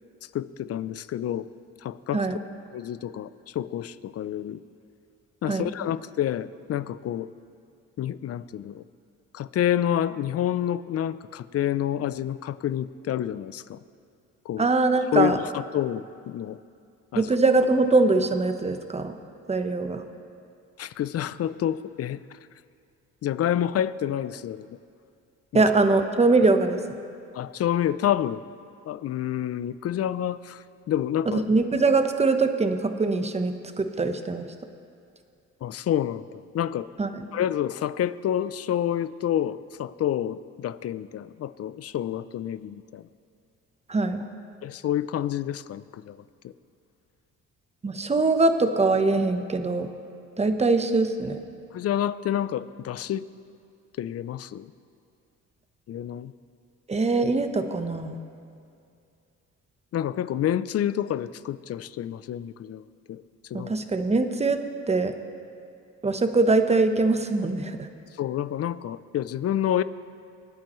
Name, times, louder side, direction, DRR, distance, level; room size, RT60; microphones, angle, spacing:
voice 1, 0.3-1.5 1.8-2.4 2.7-4.6 5.4-7.3 8.0-8.8 9.3-13.8 14.5-14.7 15.1-16.6 17.1-17.3 20.8-22.4 23.2-24.8 25.5-25.6 27.3-28.4 28.9-31.5 35.6-36.3 36.5-36.9 37.3-43.1 44.6-46.2 46.4-46.5 51.7-53.2 54.0-54.7 55.9-56.3 59.9-62.8 63.1-63.2 63.5-63.7 68.2-69.8, left 11 dB, 55° left, 16 dB, 0.5 m, -28 dB
voice 2, 14.6-15.4 17.1-19.1 19.5-20.0 25.5-26.8 31.3-34.5 37.0-37.2 43.9-44.2 47.8-49.9 50.4-51.4 56.9-58.1 63.5-64.6 64.9-65.1 66.0-67.9, right 3 dB, 20° right, 7 dB, 1.0 m, -22 dB
27.0 x 9.3 x 3.1 m, 2.4 s
cardioid pair, 90°, 30 cm